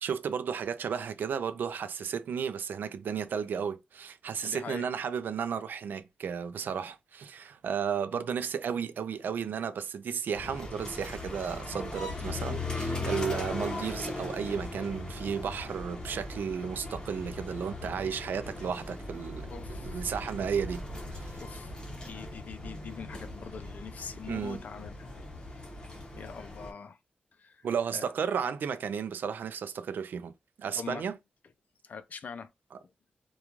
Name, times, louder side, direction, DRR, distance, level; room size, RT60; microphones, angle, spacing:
voice 1, 0.0-19.5 19.8-20.8 21.1-21.4 24.3-24.6 27.6-30.3 30.6-31.1, right 7 dB, 85° right, 0.3 m, -33 dB
voice 2, 4.4-4.9 19.5-20.2 21.4-21.7 22.1-25.1 26.1-27.0 27.3-27.7 27.9-28.1 30.7-31.1 31.8-32.5, left 6 dB, 55° left, 0.3 m, -43 dB
sound 1, 10.3-26.7, left 2 dB, 25° left, 0.8 m, -39 dB
3.0 x 2.3 x 2.4 m
wide cardioid pair, 165°, 3 cm